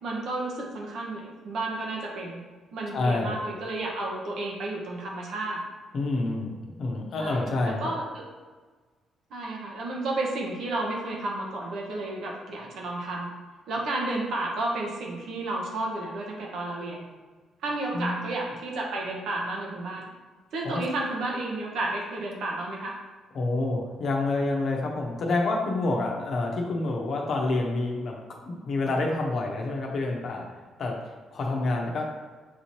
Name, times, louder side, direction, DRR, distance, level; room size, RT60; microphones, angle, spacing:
voice 1, 0.0-2.4 2.7-5.6 7.2-8.2 9.3-13.3 13.7-17.0 17.6-20.1 20.5-23.0, right 2 dB, 75° right, -2 dB, 1.0 m, -32 dB
voice 2, 2.9-3.4 5.9-7.9 17.9-18.3 20.6-20.8 23.3-28.2 28.4-30.5 30.8-32.0, left 2 dB, 60° left, 0 dB, 0.8 m, -28 dB
6.2 x 2.8 x 3.1 m, 1.4 s
cardioid pair, 90°, 0 cm